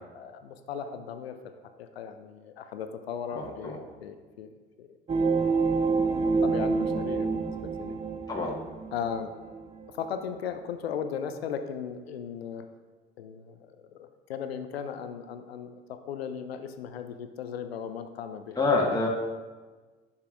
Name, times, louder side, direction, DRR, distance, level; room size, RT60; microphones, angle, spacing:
voice 1, 0.1-1.4 1.8-4.5 4.8-5.0 5.7-5.8 6.4-8.0 8.9-9.3 9.9-12.7 13.2-19.0, left 7 dB, 80° left, 9 dB, 0.5 m, -37 dB
voice 2, 3.3-3.8 8.3-8.6 18.6-19.1, left 3 dB, 10° left, -3 dB, 1.5 m, -27 dB
sound 1, 5.1-9.9 10.4-10.5, right 4 dB, 20° right, 0.6 m, -28 dB
10.5 x 7.1 x 2.5 m, 1.3 s
figure-of-eight pair, 60°, 30 cm